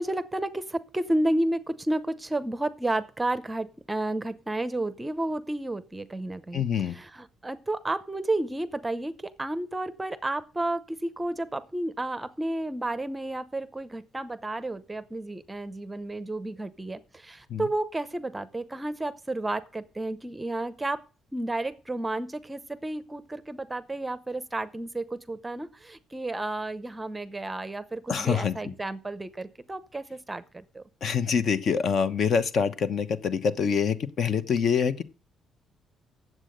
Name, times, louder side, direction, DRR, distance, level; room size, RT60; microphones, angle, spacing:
voice 1, 0.0-21.0 21.3-30.8, right 1 dB, 10° right, 0.7 m, -31 dB
voice 2, 6.5-7.0 17.5-17.6 28.1-28.6 31.0-35.0, left 6 dB, 50° left, 1.0 m, -25 dB
9.6 x 7.6 x 6.6 m
cardioid pair, 150°, 0 cm